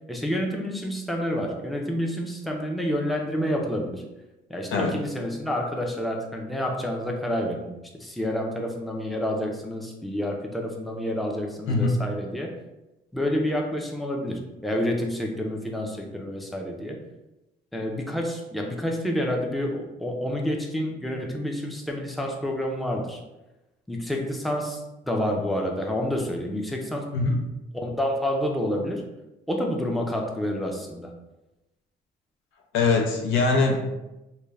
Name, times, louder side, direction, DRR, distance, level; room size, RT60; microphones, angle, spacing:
voice 1, 0.1-4.0 4.5-12.5 13.1-17.0 17.7-23.2 23.9-27.2 27.7-29.0 29.5-31.1, equal, ahead, 1 dB, 0.4 m, -29 dB
voice 2, 32.7-33.9, left 3 dB, 85° left, 3 dB, 0.5 m, -22 dB
2.3 x 2.1 x 3.2 m, 0.97 s
cardioid pair, 90°, 20 cm